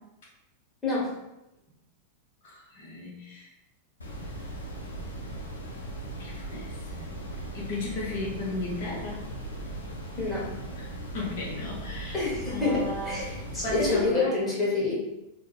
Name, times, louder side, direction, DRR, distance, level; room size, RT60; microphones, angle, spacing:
voice 1, 2.4-3.5 6.2-7.1 7.5-9.2 10.8-13.2 13.6-14.4, left 2 dB, 50° left, -3 dB, 0.8 m, -35 dB
sound 1, 4.0-14.0, right 1 dB, 75° left, 0.5 m, -38 dB
voice 2, 10.1-10.5 12.1-15.0, left 3 dB, 10° left, -7 dB, 1.3 m, -27 dB
2.8 x 2.2 x 3.0 m, 0.91 s
figure-of-eight pair, 90°, 0 cm